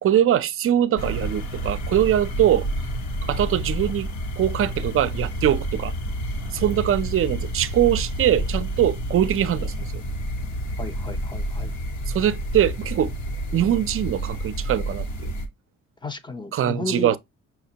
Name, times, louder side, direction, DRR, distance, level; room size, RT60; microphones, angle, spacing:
voice 1, 0.0-2.7 3.3-4.1 4.4-5.9 6.5-9.9 12.1-13.1 13.5-15.3 16.5-17.2, right 11 dB, 45° right, 0.4 m, -22 dB
sound 1, 1.0-15.5, right 1 dB, 75° left, 1.1 m, -29 dB
voice 2, 10.8-11.7 16.0-17.2, left 3 dB, 15° left, 0.5 m, -33 dB
5.8 x 2.1 x 2.7 m
cardioid pair, 90°, 30 cm